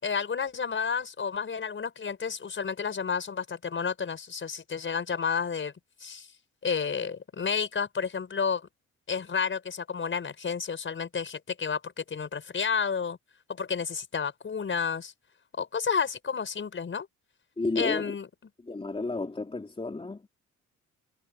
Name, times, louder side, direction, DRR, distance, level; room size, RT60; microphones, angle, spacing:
voice 1, 0.0-5.7 6.0-6.3 6.6-8.6 9.1-13.2 13.5-15.1 15.6-17.1 17.8-18.3, left 6 dB, 40° left, 5.7 m, -31 dB
voice 2, 17.6-18.1 18.6-20.3, left 3 dB, 20° left, 3.1 m, -32 dB
cardioid pair, 90°, 30 cm